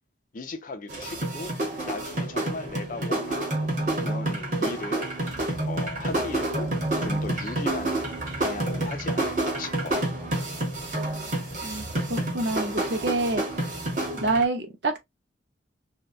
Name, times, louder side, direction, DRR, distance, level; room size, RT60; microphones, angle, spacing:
voice 1, 0.3-1.5 1.8-5.2 5.6-6.7 7.0-8.0 8.4-10.0, left 3 dB, 45° left, 0.5 m, -37 dB
sound 1, 0.9-14.4, right 1 dB, 45° right, 1.0 m, -29 dB
voice 2, 11.6-13.4 14.2-15.0, right 2 dB, 65° right, 0.6 m, -27 dB
2.8 x 2.2 x 2.3 m
head